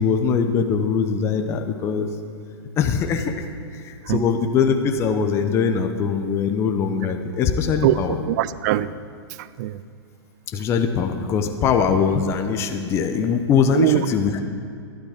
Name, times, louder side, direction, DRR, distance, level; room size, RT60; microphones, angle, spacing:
voice 1, 0.0-2.1 2.8-3.4 3.7-8.1 10.5-14.4, left 6 dB, 20° left, 6 dB, 0.6 m, -22 dB
voice 2, 8.3-8.9 9.4-9.8 13.7-14.1, right 14 dB, 40° right, 16 dB, 0.4 m, -21 dB
12.0 x 12.0 x 5.0 m, 2.4 s
hypercardioid pair, 155°, 14 cm